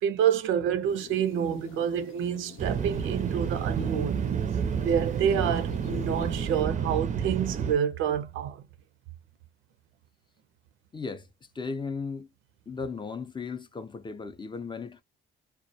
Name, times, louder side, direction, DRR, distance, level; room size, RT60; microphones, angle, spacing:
voice 1, 0.0-4.2 4.7-8.6, right 8 dB, 85° right, 0.5 m, -28 dB
sound 1, 0.9-6.6, left 9 dB, 80° left, 0.5 m, -44 dB
sound 2, 2.6-7.7, right 7 dB, 40° right, 0.4 m, -30 dB
voice 2, 10.9-11.3 11.6-12.3 12.7-15.0, left 4 dB, 25° left, 0.4 m, -36 dB
2.2 x 2.1 x 2.7 m
cardioid pair, 90°, 20 cm